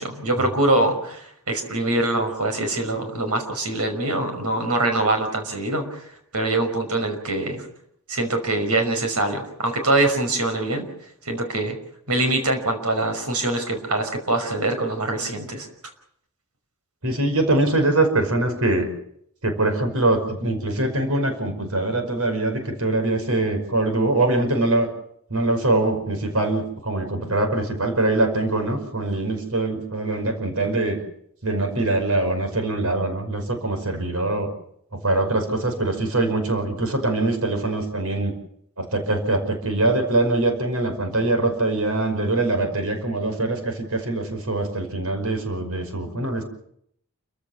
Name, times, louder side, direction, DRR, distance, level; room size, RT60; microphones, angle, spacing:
voice 1, 0.0-6.1 6.3-7.7 8.1-10.9 11.2-11.8 12.1-15.7, right 2 dB, 90° right, 6 dB, 5.7 m, -24 dB
voice 2, 17.0-18.9 19.4-24.9 25.3-31.0 31.4-34.5 34.9-38.3 38.8-46.4, right 2 dB, 75° right, 6 dB, 5.4 m, -23 dB
29.0 x 15.5 x 7.5 m, 0.70 s
head